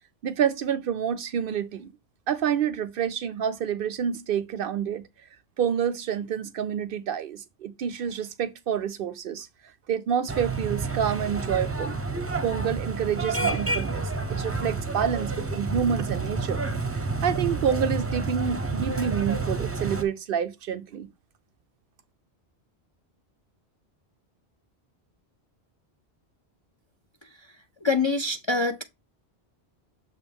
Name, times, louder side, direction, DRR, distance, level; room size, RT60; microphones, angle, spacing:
voice 1, 0.2-1.9 2.3-5.0 5.6-9.5 9.9-12.0 12.4-14.0 14.3-16.7 17.2-21.1, right 8 dB, 65° right, 0.7 m, -28 dB
sound 1, 10.3-20.0, right 3 dB, 15° right, 0.6 m, -29 dB
voice 2, 27.2-27.5 27.8-28.8, left 3 dB, 40° left, 0.4 m, -26 dB
7.0 x 2.7 x 5.2 m
omnidirectional pair, 1.1 m